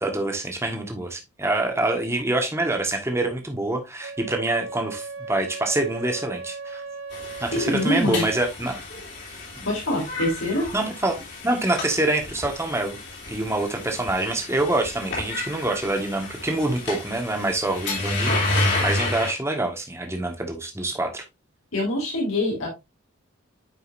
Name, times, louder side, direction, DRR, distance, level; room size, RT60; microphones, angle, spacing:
voice 1, 0.0-6.8 7.4-8.8 9.6-9.7 10.7-11.2 11.4-13.0 13.3-21.2, right 2 dB, 10° right, 1.4 m, -26 dB
Wind instrument woodwind instrument, 4.0-8.5, right 4 dB, 80° right, 1.1 m, -37 dB
sound 1, 7.1-19.3, left 2 dB, 55° left, 3.4 m, -30 dB
voice 2, 7.5-8.3 9.6-10.7 21.7-22.7, left 1 dB, 75° left, 3.5 m, -24 dB
9.5 x 5.3 x 2.5 m
head